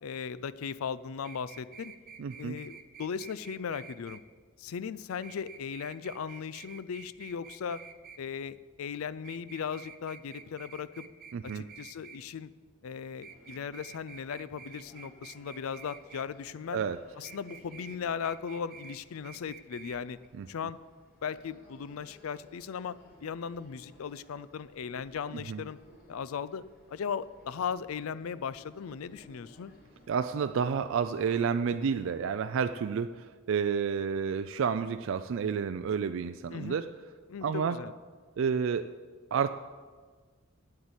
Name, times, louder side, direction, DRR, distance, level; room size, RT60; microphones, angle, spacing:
voice 1, 0.0-1.9 2.4-4.2 4.6-7.8 8.2-11.1 11.5-12.5 12.8-16.8 17.2-20.2 20.5-20.8 21.2-25.8 26.1-26.6 26.9-29.7 36.5-36.8 37.3-37.9, left 6 dB, 90° left, 17 dB, 0.4 m, -37 dB
sound 1, 1.2-4.2 5.2-8.2 9.2-12.2 13.2-16.3 17.2-18.0 18.2-19.0 19.2-20.0 20.2-20.3, right 6 dB, 45° right, 0.7 m, -49 dB
voice 2, 2.2-2.6 11.3-11.6 16.7-17.0 20.4-20.5 25.3-25.6 30.1-36.9 37.4-37.8 38.4-38.9 39.3-39.5, right 6 dB, 65° right, 10 dB, 0.4 m, -30 dB
sound 2, 13.2-32.1, left 1 dB, 50° left, 4.0 m, -59 dB
8.8 x 8.2 x 7.9 m, 1.5 s
head